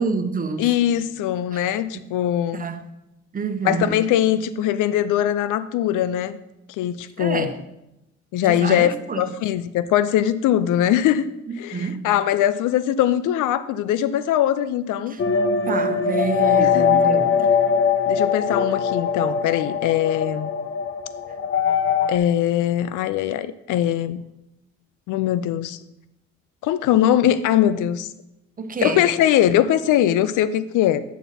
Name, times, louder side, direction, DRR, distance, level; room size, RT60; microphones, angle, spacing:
voice 1, 0.0-0.7 1.5-1.6 2.5-2.8 3.3-4.0 7.2-7.6 8.4-9.4 11.5-12.1 15.1-15.2 15.7-17.5 28.6-29.1, right 4 dB, 30° right, 1.0 m, -28 dB
voice 2, 0.6-2.7 3.6-6.4 6.8-7.5 8.3-11.3 11.6-15.1 16.6-17.0 18.1-20.5 22.1-24.2 25.1-25.8 26.6-28.1 28.8-31.0, left 11 dB, 85° left, 0.5 m, -21 dB
sound 1, 15.2-22.2, left 6 dB, 45° left, 0.6 m, -21 dB
9.3 x 6.9 x 4.2 m
cardioid pair, 90°, 30 cm